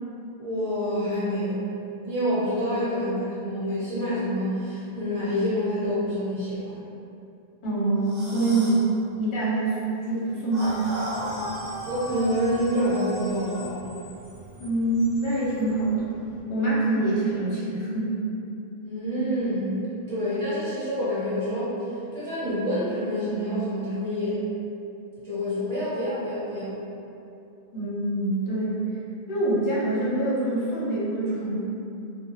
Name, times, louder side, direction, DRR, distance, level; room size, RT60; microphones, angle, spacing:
voice 1, 0.4-1.6 2.0-6.7 11.8-13.8 18.8-21.8 22.1-24.4 25.2-26.8, equal, 30° right, -13 dB, 1.2 m, -27 dB
voice 2, 7.6-8.9 9.2-9.7 10.0-10.8 14.6-16.2 16.5-18.1 27.7-28.8 29.3-31.6, right 2 dB, 55° left, -8 dB, 0.9 m, -25 dB
sound 1, 8.0-8.9 10.5-13.7, equal, 65° right, 0.8 m, -35 dB
Screech, 10.6-16.4, equal, 15° left, 1.0 m, -46 dB
2.3 x 2.2 x 3.0 m, 2.7 s
omnidirectional pair, 1.1 m